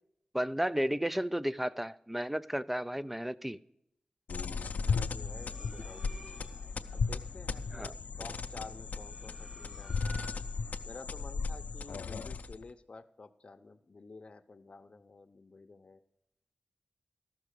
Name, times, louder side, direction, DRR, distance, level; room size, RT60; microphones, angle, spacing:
voice 1, 0.3-3.6 7.7-7.9, equal, 5° right, 16 dB, 0.3 m, -33 dB
sound 1, 4.3-12.7, left 5 dB, 85° left, 0.4 m, -36 dB
voice 2, 4.8-6.4 6.9-7.9 8.2-10.4 10.8-16.0, left 3 dB, 45° left, 8 dB, 0.7 m, -51 dB
sound 2, 5.2-6.8 8.7-10.7, right 1 dB, 25° right, 0.9 m, -53 dB
13.5 x 6.0 x 6.5 m, 0.78 s
wide cardioid pair, 115°, 3 cm